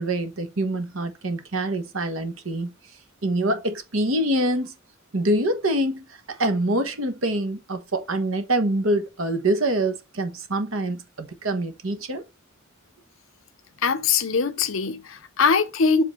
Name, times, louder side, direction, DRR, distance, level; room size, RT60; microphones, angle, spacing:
voice 1, 0.0-2.7 3.2-4.7 5.1-12.2, right 1 dB, 75° right, 1.2 m, -25 dB
voice 2, 13.8-16.0, left 5 dB, 70° left, 0.8 m, -22 dB
7.8 x 3.8 x 3.2 m
head